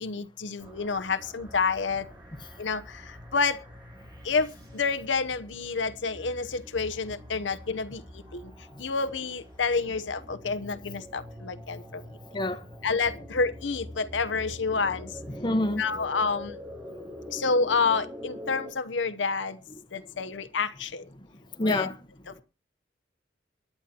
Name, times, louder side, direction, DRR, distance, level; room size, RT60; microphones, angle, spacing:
voice 1, 0.0-2.0 2.6-2.8 3.3-3.6 4.3-4.5 4.7-8.0 8.3-8.4 8.8-11.8 12.8-15.1 15.8-16.5 17.3-19.5 19.9-21.0 21.6-21.9, left 4 dB, 85° left, 0.8 m, -28 dB
sound 1, 0.6-18.7, equal, 20° right, 6.1 m, -45 dB
voice 2, 12.3-12.6 13.2-13.3 15.3-15.8 19.7-19.8 21.1-21.3 21.5-22.0 22.3-22.4, left 1 dB, 25° left, 1.2 m, -28 dB
23.5 x 10.0 x 2.9 m
head